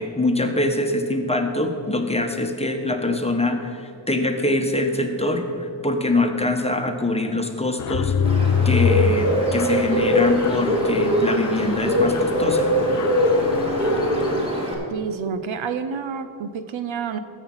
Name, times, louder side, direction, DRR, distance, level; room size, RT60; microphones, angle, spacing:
voice 1, 0.0-8.1 8.6-12.7, left 1 dB, 15° left, 4 dB, 1.2 m, -24 dB
Mechanisms, 7.8-14.5, left 7 dB, 40° left, 0.4 m, -26 dB
Bird, 8.2-14.7, equal, 10° right, 2.7 m, -22 dB
voice 2, 14.9-17.2, right 6 dB, 75° right, 10 dB, 0.8 m, -29 dB
15.0 x 6.3 x 5.6 m, 2.5 s
cardioid pair, 75°, 47 cm